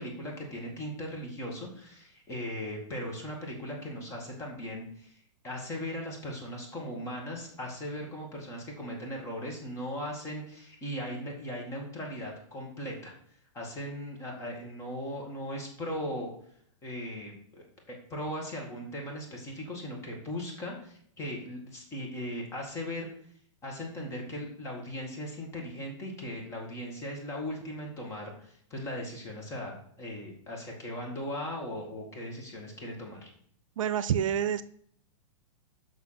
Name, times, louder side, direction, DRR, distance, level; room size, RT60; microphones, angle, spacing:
voice 1, 0.0-13.1 13.5-16.3 16.8-23.1 23.6-33.3, equal, 15° left, 0 dB, 1.8 m, -38 dB
voice 2, 33.8-34.6, right 9 dB, 75° right, 15 dB, 0.6 m, -27 dB
7.4 x 5.9 x 5.7 m, 0.63 s
hypercardioid pair, 155°, 17 cm